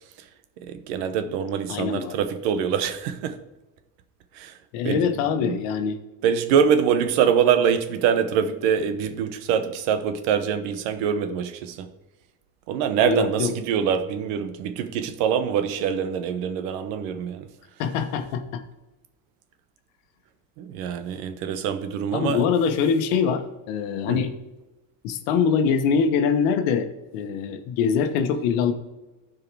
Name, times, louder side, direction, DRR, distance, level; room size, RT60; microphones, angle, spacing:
voice 1, 0.6-3.4 4.3-4.6 4.8-5.0 5.4-5.6 6.2-11.9 12.7-17.5 20.6-22.5 24.1-24.2, right 7 dB, 85° right, 1.1 m, -24 dB
voice 2, 1.7-2.1 4.7-6.0 13.0-13.5 17.8-18.6 22.1-24.3 25.0-26.9 27.1-28.7, left 6 dB, 85° left, 1.1 m, -23 dB
12.5 x 4.8 x 4.6 m
cardioid pair, 145°, 38 cm